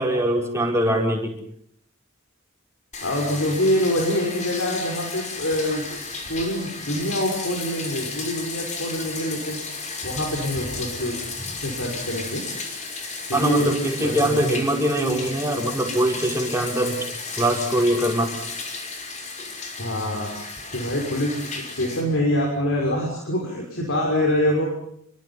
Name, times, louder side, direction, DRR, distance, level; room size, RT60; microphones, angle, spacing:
voice 1, 0.0-1.3 13.3-17.0 17.4-18.3, right 1 dB, 15° right, 1 dB, 5.7 m, -22 dB
Bathtub (filling or washing), 2.9-22.0, left 4 dB, 35° left, 5.6 m, -34 dB
voice 2, 3.0-5.8 6.3-9.6 10.0-11.2 11.6-12.4 13.3-13.7 14.0-14.4 19.8-20.3 20.7-24.7, left 1 dB, 65° left, 0 dB, 6.0 m, -25 dB
29.0 x 23.5 x 5.9 m, 0.69 s
head